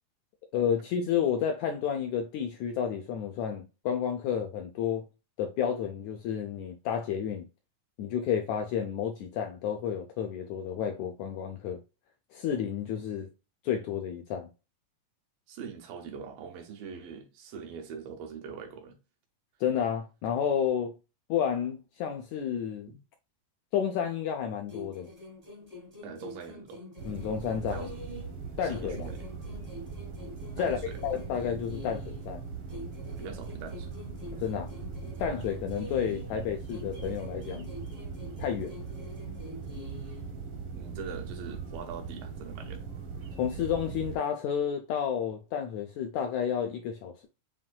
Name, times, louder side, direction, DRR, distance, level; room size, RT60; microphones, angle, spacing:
voice 1, 0.5-5.1 5.4-7.5 8.0-11.8 12.3-13.3 13.6-14.5 19.6-20.9 21.3-22.9 23.7-25.1 27.0-27.9 28.6-29.1 30.6-32.4 34.4-34.7 35.2-37.7 38.4-38.7 43.4-47.3, left 8 dB, 80° left, 1.7 m, -31 dB
voice 2, 15.5-19.0 22.9-23.0 26.0-26.8 27.7-28.0 28.6-29.3 30.6-31.0 33.2-33.9 40.7-42.9, right 6 dB, 90° right, 2.8 m, -43 dB
sound 1, 24.7-28.4 28.7-32.3 32.7-36.4 36.7-40.3, left 2 dB, 35° right, 0.6 m, -46 dB
sound 2, 27.0-44.2, right 5 dB, 65° right, 1.4 m, -40 dB
7.4 x 2.6 x 2.2 m
omnidirectional pair, 3.9 m